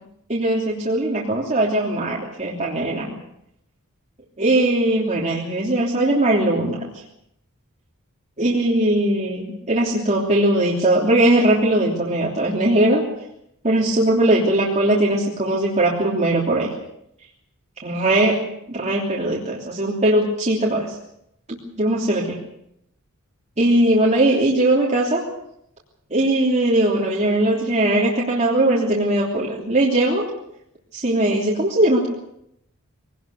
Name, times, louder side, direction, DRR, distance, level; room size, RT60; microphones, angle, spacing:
voice 1, 0.3-3.1 4.4-6.8 8.4-13.0 13.6-16.7 17.8-18.4 18.7-21.0 21.5-22.4 23.6-25.2 26.1-30.2 30.9-32.1, right 1 dB, 30° right, -4 dB, 3.1 m, -20 dB
23.0 x 19.0 x 6.9 m, 0.78 s
head